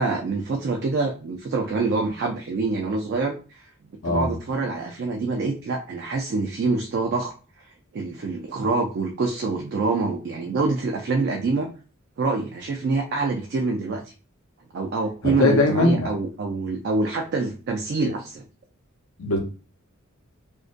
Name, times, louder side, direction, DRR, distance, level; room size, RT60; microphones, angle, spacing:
voice 1, 0.0-3.7 4.0-7.3 7.9-11.7 12.2-14.0 14.7-18.5, right 3 dB, 50° right, 2 dB, 0.3 m, -26 dB
voice 2, 15.2-16.1 19.2-19.4, left 2 dB, 75° left, 3 dB, 0.6 m, -20 dB
2.6 x 2.1 x 2.4 m, 0.36 s
head